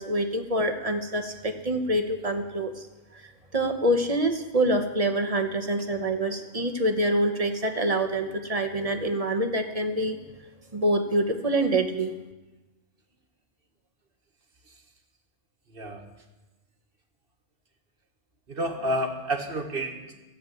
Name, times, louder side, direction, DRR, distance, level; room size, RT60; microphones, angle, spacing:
voice 1, 0.0-2.9 3.1-3.2 3.5-10.2 10.7-12.1, right 1 dB, 35° right, 6 dB, 1.2 m, -26 dB
voice 2, 18.5-20.2, right 1 dB, 55° right, 4 dB, 1.8 m, -30 dB
15.0 x 7.6 x 9.3 m, 1.1 s
omnidirectional pair, 1.2 m